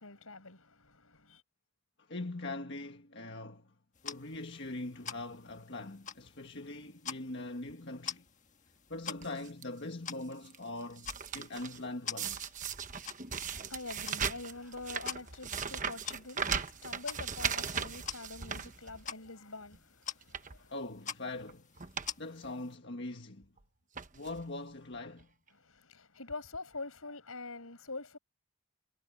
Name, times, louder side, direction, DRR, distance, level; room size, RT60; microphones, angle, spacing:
voice 1, 0.0-1.4 13.5-20.7 25.5-28.2, left 3 dB, 80° left, 5.9 m, -45 dB
voice 2, 2.0-3.7 4.0-8.2 8.9-12.5 20.7-21.7 22.2-23.5 24.1-25.3, left 2 dB, 55° left, 1.6 m, -42 dB
sound 1, 3.9-22.7, left 7 dB, 35° left, 1.6 m, -47 dB
sound 2, 9.2-9.6 10.2-10.6 10.8-11.8 12.2-19.3 19.7-19.8 20.2-20.6 21.4-21.5 21.8-22.1 22.4-22.5 23.4-23.6 23.9-24.4 25.2-25.3 25.5-25.6, right 7 dB, 35° right, 1.2 m, -38 dB
head